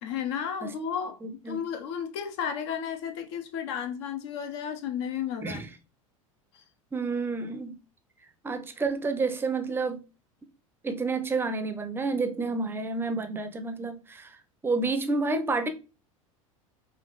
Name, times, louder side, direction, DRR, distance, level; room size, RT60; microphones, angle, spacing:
voice 1, 0.0-1.2 1.5-5.6 6.5-6.6, left 8 dB, 55° left, 0.8 m, -33 dB
voice 2, 1.2-1.6 5.4-5.7 6.9-7.8 8.4-10.0 10.8-14.4 14.6-15.7, right 3 dB, 10° right, 0.7 m, -29 dB
5.4 x 2.5 x 3.0 m
figure-of-eight pair, 80°, 18 cm